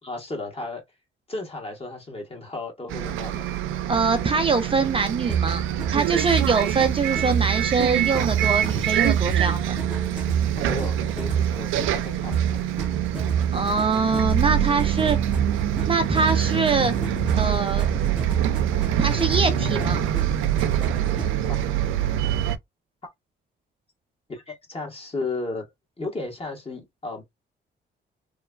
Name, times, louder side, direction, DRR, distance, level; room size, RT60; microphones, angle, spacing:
voice 1, 0.0-0.8 1.3-3.4 10.6-12.7 21.6-21.7 24.3-25.6 26.0-27.2, left 3 dB, 30° left, 1.4 m, -34 dB
Bus, 2.9-22.6, right 10 dB, 85° right, 0.4 m, -26 dB
voice 2, 3.9-5.6 5.9-9.7 13.5-15.2 15.9-16.9 17.4-18.0 19.0-20.1, right 4 dB, 30° right, 0.5 m, -23 dB
sound 1, 5.3-21.5, right 7 dB, 5° right, 1.0 m, -28 dB
3.0 x 2.2 x 2.3 m
cardioid pair, 90°, 20 cm